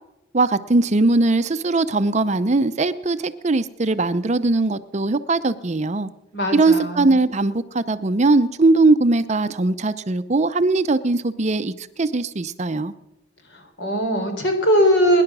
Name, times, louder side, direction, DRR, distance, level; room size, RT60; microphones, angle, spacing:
voice 1, 0.3-6.1 6.5-12.9, right 2 dB, 35° right, 0.6 m, -20 dB
voice 2, 6.3-7.1 13.5-15.2, equal, 65° left, 3.6 m, -20 dB
22.0 x 10.5 x 6.1 m
head